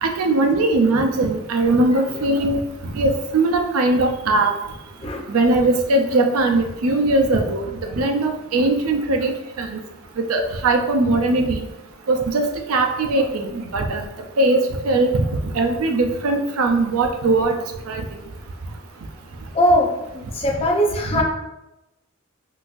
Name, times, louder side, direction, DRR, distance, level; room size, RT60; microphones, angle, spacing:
voice 1, 0.0-2.6 2.9-4.5 5.3-7.6 8.0-9.3 9.6-9.7 10.3-11.6 12.1-14.0 14.4-14.6 14.9-15.2 15.6-17.5 17.9-18.0, right 2 dB, 90° right, 5 dB, 0.5 m, -19 dB
voice 2, 19.5-21.2, equal, 30° left, 1 dB, 0.5 m, -20 dB
3.9 x 2.4 x 2.5 m, 0.94 s
head